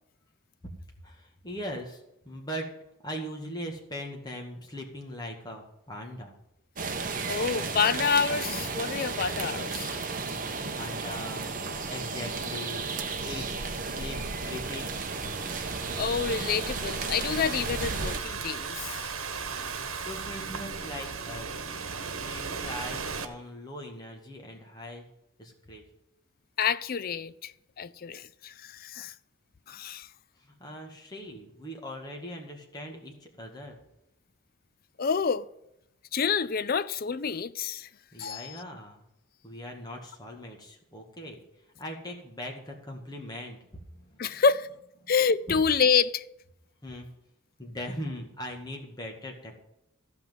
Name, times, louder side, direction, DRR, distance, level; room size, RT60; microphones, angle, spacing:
voice 1, 1.0-2.7 3.0-6.3 10.2-11.5 11.9-12.9 13.2-13.5 13.8-14.9 19.4-21.7 22.2-25.1 25.4-25.9 30.4-33.8 38.1-39.0 39.4-41.4 41.8-43.6 43.9-44.4 45.0-45.1 46.8-47.1 47.6-49.5, equal, 20° left, 1.9 m, -40 dB
sound 1, 6.8-18.2, right 4 dB, 40° right, 1.1 m, -33 dB
voice 2, 7.3-10.0 16.0-19.1 26.6-29.1 29.7-30.1 35.0-35.4 36.1-37.9 38.2-38.6 44.2-44.7 45.1-46.2, left 6 dB, 45° left, 0.4 m, -28 dB
Thunderstorm / Rain, 14.2-23.2, right 5 dB, 85° right, 1.4 m, -37 dB
14.5 x 6.0 x 7.6 m
head